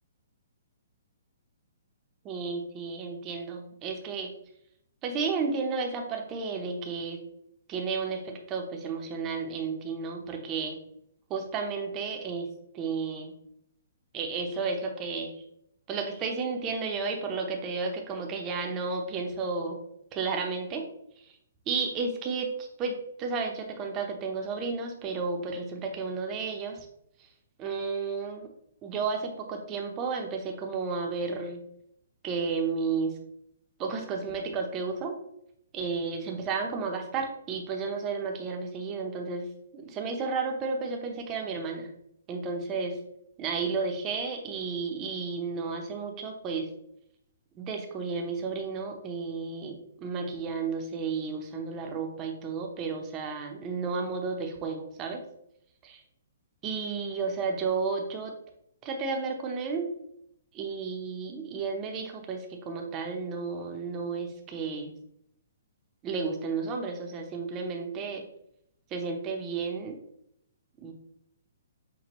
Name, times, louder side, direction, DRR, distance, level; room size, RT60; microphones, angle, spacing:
voice 1, 2.2-4.3 5.0-7.2 7.7-10.8 11.3-12.5 12.7-13.4 14.1-15.4 15.9-19.8 20.1-20.9 21.2-21.3 21.7-26.9 27.6-28.5 28.8-31.6 32.2-33.2 33.8-35.1 35.7-39.5 39.7-41.9 42.3-43.0 43.4-46.7 47.6-55.2 55.8-56.0 56.6-58.3 58.8-59.9 60.5-64.9 66.0-68.3 68.9-70.0 70.8-70.9, right 4 dB, 25° right, 2 dB, 0.8 m, -32 dB
6.0 x 2.3 x 3.0 m, 0.74 s
hypercardioid pair, 145°, 0 cm